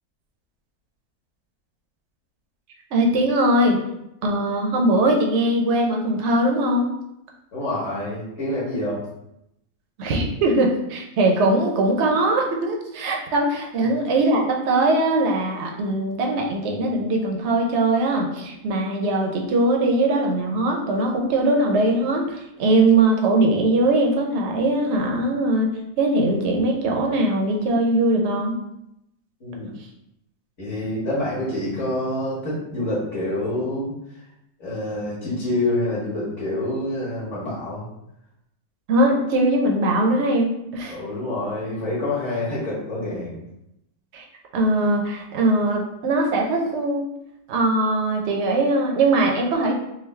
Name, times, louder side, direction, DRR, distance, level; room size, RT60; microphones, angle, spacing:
voice 1, 2.9-3.8 4.2-6.9 10.0-25.7 26.0-28.5 38.9-41.0 44.1-44.2 44.5-47.1 47.5-49.8, right 2 dB, 60° right, 1 dB, 0.8 m, -21 dB
voice 2, 7.5-9.0 29.4-29.7 30.6-33.9 34.6-37.8 40.9-43.4, left 1 dB, 50° left, -8 dB, 1.5 m, -27 dB
3.8 x 2.6 x 3.2 m, 0.83 s
omnidirectional pair, 1.7 m